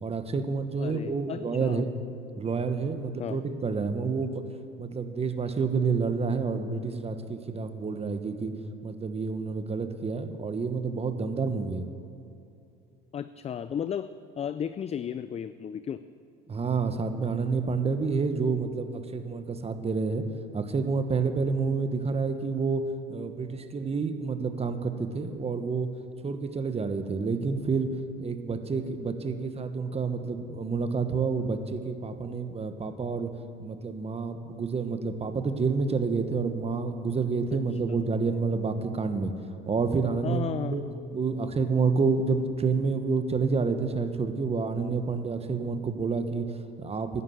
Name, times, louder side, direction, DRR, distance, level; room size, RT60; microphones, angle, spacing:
voice 1, 0.0-1.9 2.4-4.4 4.8-8.5 8.8-11.9 16.5-20.2 20.5-22.8 23.1-25.9 26.2-27.9 28.2-33.3 33.6-39.3 39.7-40.8 41.1-47.2, right 4 dB, 30° right, 9 dB, 1.3 m, -29 dB
voice 2, 0.8-1.9 3.2-3.4 13.1-14.1 14.4-16.0 37.5-37.6 40.2-41.0, left 8 dB, 30° left, 13 dB, 0.4 m, -34 dB
11.0 x 10.0 x 7.9 m, 2.7 s
supercardioid pair, 80°, 21 cm